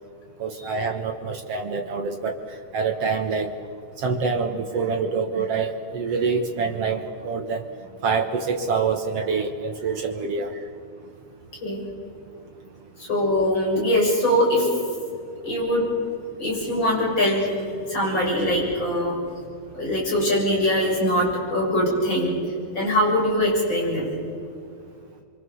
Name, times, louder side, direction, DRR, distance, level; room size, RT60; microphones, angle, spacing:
voice 1, 0.4-3.5 4.0-7.6 8.0-10.7 17.7-17.8, right 5 dB, 70° right, 4 dB, 1.5 m, -26 dB
voice 2, 13.0-14.7 15.4-15.8 16.4-17.5 17.9-19.1 19.7-22.3 22.7-24.1, equal, 25° left, -3 dB, 7.8 m, -22 dB
25.5 x 25.0 x 7.0 m, 2.3 s
omnidirectional pair, 4.7 m